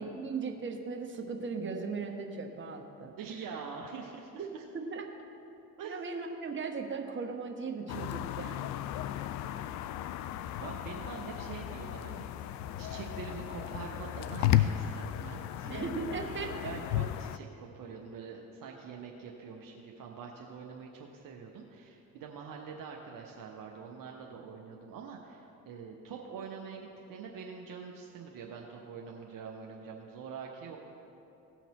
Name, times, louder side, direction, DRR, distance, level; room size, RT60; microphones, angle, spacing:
voice 1, 0.0-3.1 4.7-5.1 5.8-8.7 15.7-16.8, right 4 dB, 25° right, 3 dB, 1.2 m, -37 dB
voice 2, 3.2-4.6 5.8-6.0 10.6-12.3 12.8-30.8, right 6 dB, 45° right, 0 dB, 0.9 m, -45 dB
sound 1, 7.9-17.4, left 12 dB, 40° left, 0.4 m, -34 dB
16.5 x 5.9 x 4.1 m, 2.9 s
figure-of-eight pair, 55°, 46 cm